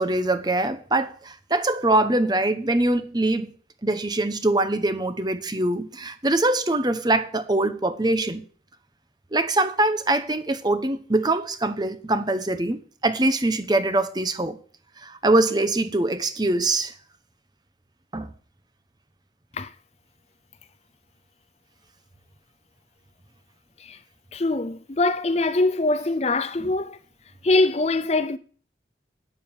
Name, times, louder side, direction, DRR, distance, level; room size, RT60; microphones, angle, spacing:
voice 1, 0.0-3.5 3.8-8.5 9.3-14.6 15.0-16.9 18.1-18.3 26.6-26.7, right 2 dB, 25° right, 1.0 m, -23 dB
voice 2, 24.3-27.0 27.4-28.4, left 2 dB, 35° left, 0.6 m, -23 dB
9.7 x 9.3 x 7.2 m
head